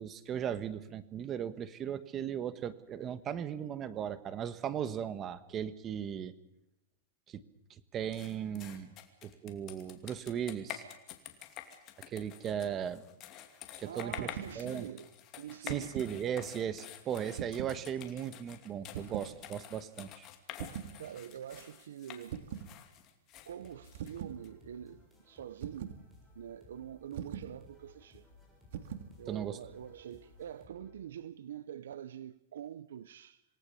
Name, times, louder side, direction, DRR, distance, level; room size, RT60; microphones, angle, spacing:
voice 1, 0.0-6.3 7.3-7.4 7.9-8.9 9.2-10.8 12.1-13.0 13.8-14.3 14.6-14.9 15.6-20.3 29.3-29.6, right 9 dB, 25° right, 1.3 m, -37 dB
sound 1, 8.1-24.5, left 11 dB, 30° left, 2.5 m, -48 dB
voice 2, 13.7-16.0 21.0-22.7 23.4-26.0 26.3-28.3 29.2-33.4, right 10 dB, 85° right, 0.8 m, -45 dB
sound 2, 14.1-14.6 15.5-16.2 17.3-17.8 18.9-19.3 20.6-21.0 22.3-22.7 23.9-24.4 25.6-26.0 27.1-27.5 28.7-29.1, right 9 dB, 65° right, 2.0 m, -41 dB
sound 3, 23.3-31.0, left 3 dB, ahead, 6.9 m, -60 dB
27.0 x 18.5 x 7.1 m
supercardioid pair, 155°, 0 cm